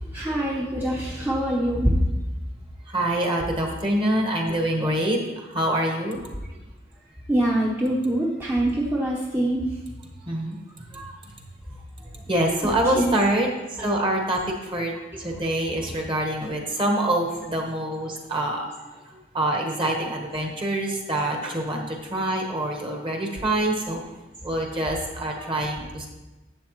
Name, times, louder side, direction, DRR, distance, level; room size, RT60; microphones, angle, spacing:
voice 1, 0.1-2.0 7.3-9.8 12.6-13.2 15.8-15.9 25.4-25.5, right 1 dB, 10° right, -4 dB, 0.8 m, -24 dB
voice 2, 2.9-6.2 10.3-10.6 10.9-11.1 12.3-13.5 13.8-14.9 15.2-18.7 19.3-24.0 24.4-26.1, right 1 dB, 25° right, 1 dB, 1.3 m, -25 dB
11.5 x 7.6 x 3.2 m, 1.1 s
head